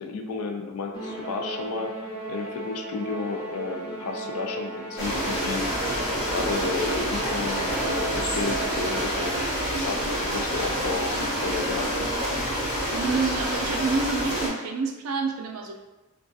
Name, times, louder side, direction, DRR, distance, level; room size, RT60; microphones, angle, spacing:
voice 1, 0.0-9.5 9.8-11.9, left 4 dB, 85° left, 3 dB, 0.4 m, -32 dB
Musical instrument, 0.9-9.4, right 2 dB, 20° left, 0.6 m, -35 dB
sound 1, 5.0-14.5, equal, 60° left, 0.9 m, -28 dB
Gunshot gunfire, 6.6-12.0, right 2 dB, 35° right, 0.5 m, -40 dB
voice 2, 12.9-15.8, right 4 dB, 85° right, 2 dB, 0.4 m, -28 dB
2.3 x 2.3 x 2.6 m, 1.1 s
head